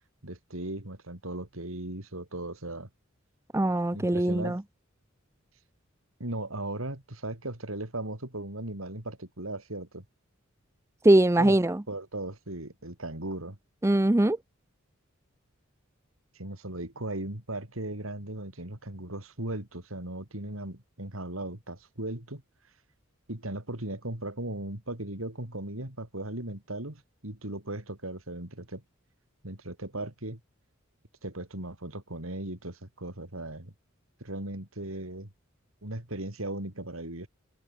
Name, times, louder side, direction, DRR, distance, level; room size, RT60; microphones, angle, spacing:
voice 1, 0.2-2.9 3.9-4.6 6.2-10.0 11.4-11.6 11.9-13.6 16.3-22.4 23.3-28.8 29.4-30.4 31.2-33.7 34.2-35.3 35.8-37.3, right 1 dB, 85° right, 4.6 m, -37 dB
voice 2, 3.5-4.6 11.0-11.8 13.8-14.4, right 1 dB, 15° right, 0.5 m, -22 dB
head